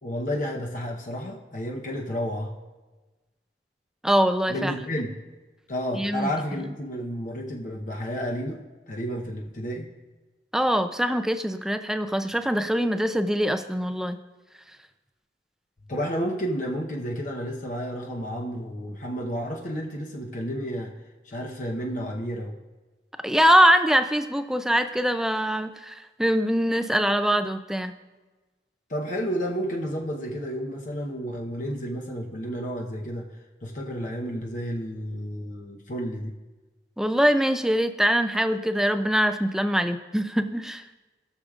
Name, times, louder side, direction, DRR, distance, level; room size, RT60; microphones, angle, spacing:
voice 1, 0.0-2.5 4.5-5.1 5.7-8.6 8.9-9.9 15.9-20.9 21.2-22.5 28.9-33.3 33.6-36.3, equal, 45° left, -1 dB, 0.9 m, -31 dB
voice 2, 4.0-4.7 6.0-6.3 10.5-14.2 23.2-27.9 37.0-40.8, equal, 5° right, 9 dB, 0.4 m, -23 dB
18.0 x 6.5 x 2.4 m, 1.2 s
head